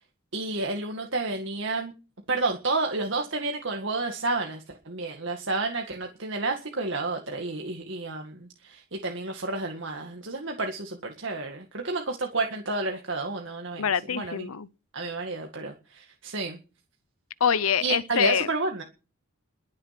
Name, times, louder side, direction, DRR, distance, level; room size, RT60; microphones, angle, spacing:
voice 1, 0.3-1.9 2.3-13.8 14.1-14.4 14.9-16.6 17.8-18.8, right 3 dB, 60° right, 2.0 m, -30 dB
voice 2, 13.8-14.7 17.4-18.5, left 7 dB, 85° left, 0.7 m, -25 dB
22.0 x 7.6 x 5.9 m
head